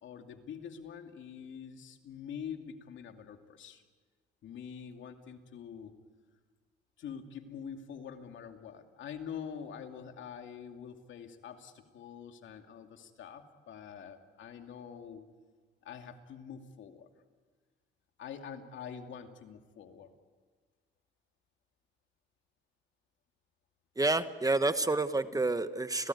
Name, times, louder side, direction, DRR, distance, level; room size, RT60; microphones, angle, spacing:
voice 1, 0.0-3.8 4.4-5.9 7.0-15.3 15.8-17.1 18.2-20.1, left 7 dB, 75° left, 5 dB, 2.5 m, -45 dB
voice 2, 24.0-26.1, right 2 dB, 15° right, 11 dB, 1.2 m, -29 dB
29.5 x 19.0 x 9.5 m, 1.5 s
cardioid pair, 90°, 20 cm